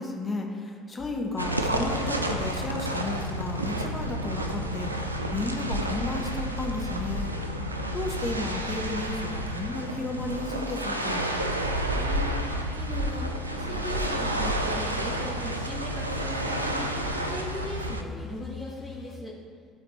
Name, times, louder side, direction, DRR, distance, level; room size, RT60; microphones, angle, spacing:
voice 1, 0.0-5.0 5.3-7.3 7.9-11.3, left 2 dB, 30° left, 1 dB, 1.1 m, -33 dB
sound 1, 1.0-5.6 6.5-19.2, left 4 dB, 55° left, 0.6 m, -43 dB
sound 2, 1.4-18.0, right 1 dB, 90° right, 0.3 m, -30 dB
voice 2, 11.9-19.3, equal, 10° right, -5 dB, 1.7 m, -39 dB
12.0 x 4.1 x 3.2 m, 2.1 s
figure-of-eight pair, 55°, 0 cm